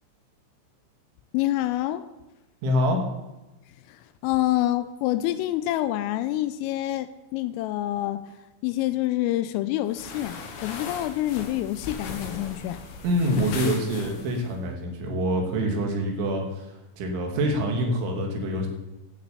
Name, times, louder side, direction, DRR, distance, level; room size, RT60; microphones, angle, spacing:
voice 1, 1.3-2.0 4.2-8.2 8.6-12.8, left 14 dB, 85° left, 13 dB, 3.1 m, -27 dB
voice 2, 2.6-3.0 13.0-18.7, equal, 70° right, 1 dB, 4.1 m, -26 dB
sound 1, 9.9-14.5, left 5 dB, 65° left, 2.9 m, -38 dB
13.0 x 7.2 x 8.2 m, 1.0 s
omnidirectional pair, 6.0 m